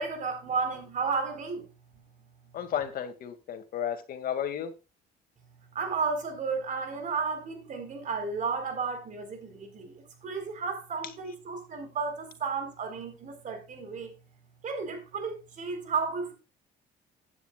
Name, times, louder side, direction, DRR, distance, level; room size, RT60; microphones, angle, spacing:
voice 1, 0.0-1.7 5.7-14.1 14.6-16.3, right 5 dB, 50° right, 4.4 m, -33 dB
voice 2, 2.5-4.7, left 9 dB, 60° left, 2.3 m, -33 dB
15.0 x 9.8 x 2.4 m
cardioid pair, 110°, 17 cm